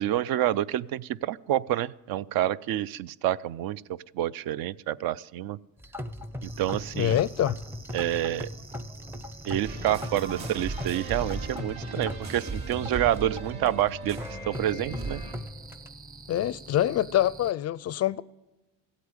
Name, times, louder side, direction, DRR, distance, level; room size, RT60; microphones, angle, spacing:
voice 1, 0.0-5.6 6.4-7.2 7.9-8.5 9.4-14.2 14.5-15.2, right 12 dB, 65° right, 0.5 m, -28 dB
sound 1, 5.8-15.9, left 1 dB, 5° right, 0.6 m, -40 dB
sound 2, 6.4-11.6 14.5-17.5, right 3 dB, 25° right, 1.1 m, -47 dB
voice 2, 6.9-7.6 16.3-18.2, left 12 dB, 45° left, 0.4 m, -25 dB
sound 3, 9.6-15.3, right 3 dB, 45° right, 3.2 m, -37 dB
15.5 x 8.3 x 9.7 m
cardioid pair, 110°, 38 cm